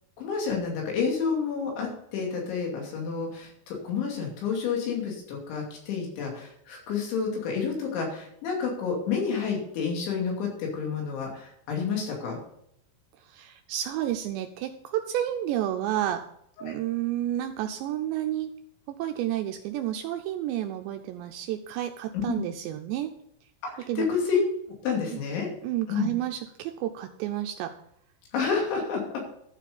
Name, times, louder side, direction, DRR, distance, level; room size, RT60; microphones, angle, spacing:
voice 1, 0.2-12.4 16.6-16.7 22.1-22.4 23.6-24.4 24.8-25.5 25.9-26.1 28.3-29.3, left 6 dB, 70° left, 0 dB, 4.9 m, -29 dB
voice 2, 13.3-16.2 16.6-18.5 18.9-23.1 23.9-24.1 25.1-25.2 25.6-27.8, right 12 dB, 85° right, 6 dB, 2.6 m, -30 dB
12.0 x 7.5 x 5.3 m, 0.74 s
omnidirectional pair, 5.5 m